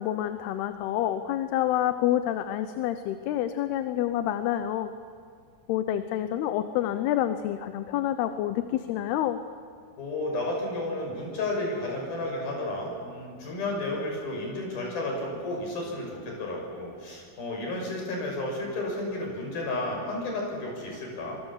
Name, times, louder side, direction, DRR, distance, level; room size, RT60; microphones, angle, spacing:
voice 1, 0.0-4.9 5.7-9.4, left 12 dB, 85° left, 9 dB, 2.9 m, -28 dB
voice 2, 10.0-21.4, left 2 dB, 65° left, 0 dB, 7.8 m, -32 dB
25.5 x 23.5 x 7.4 m, 2.2 s
omnidirectional pair, 4.5 m